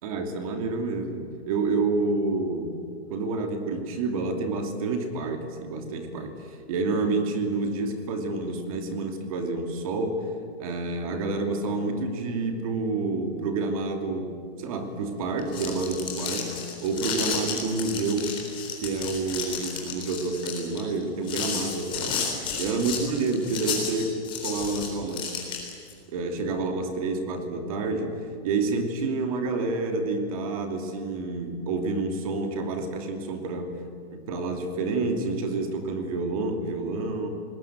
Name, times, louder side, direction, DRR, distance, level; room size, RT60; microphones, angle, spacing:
voice 1, 0.0-2.8 3.1-6.3 6.7-10.3 10.6-16.5 16.8-18.4 18.8-22.2 22.6-24.2 24.4-25.4 26.1-28.1 28.4-33.7 34.1-37.3, right 3 dB, 35° right, 5 dB, 2.8 m, -28 dB
sound 1, 15.3-25.9, left 6 dB, 15° left, 3.8 m, -32 dB
27.5 x 20.0 x 8.1 m, 2.3 s
hypercardioid pair, 175°, 32 cm